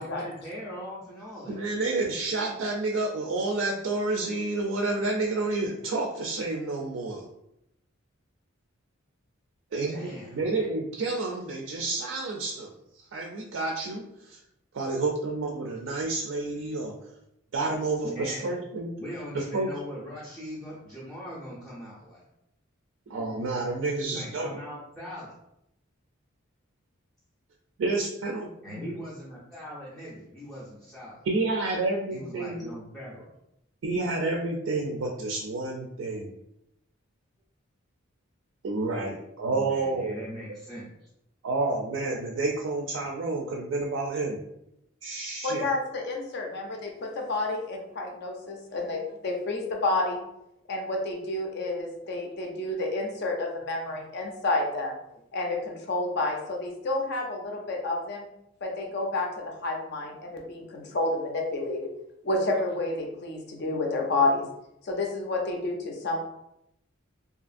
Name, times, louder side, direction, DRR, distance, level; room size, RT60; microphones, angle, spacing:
voice 1, 0.0-1.6 9.9-10.7 18.0-18.5 19.0-22.2 24.0-25.4 28.6-31.2 32.1-33.3 39.5-41.1 48.8-49.2 52.4-52.5 58.9-59.0 60.0-60.3, equal, ahead, -8 dB, 0.5 m, -41 dB
voice 2, 1.5-7.2 9.7-12.7 13.1-14.4 14.7-17.0 17.5-18.9 19.3-19.7 23.1-24.5 27.8-28.9 31.3-32.7 33.8-36.3 38.6-40.2 41.4-44.4 45.0-45.6, right 3 dB, 65° right, 0 dB, 0.3 m, -29 dB
voice 3, 45.4-50.2 50.7-55.0 55.3-58.3 58.6-61.9 62.2-64.4 64.8-66.2, left 2 dB, 55° left, 1 dB, 0.5 m, -30 dB
2.7 x 2.4 x 2.5 m, 0.81 s
head